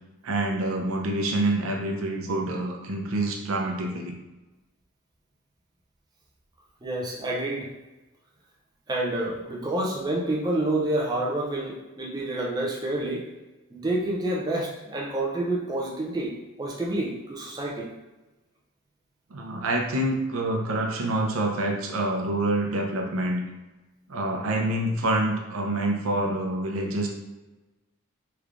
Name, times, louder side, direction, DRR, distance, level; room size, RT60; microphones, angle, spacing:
voice 1, 0.2-4.1 19.3-23.4 24.1-27.1, right 1 dB, 80° right, 1 dB, 0.6 m, -27 dB
voice 2, 6.8-7.7 8.9-13.3 13.7-17.9, right 1 dB, 20° right, -3 dB, 0.4 m, -28 dB
3.3 x 3.2 x 2.5 m, 1.1 s
head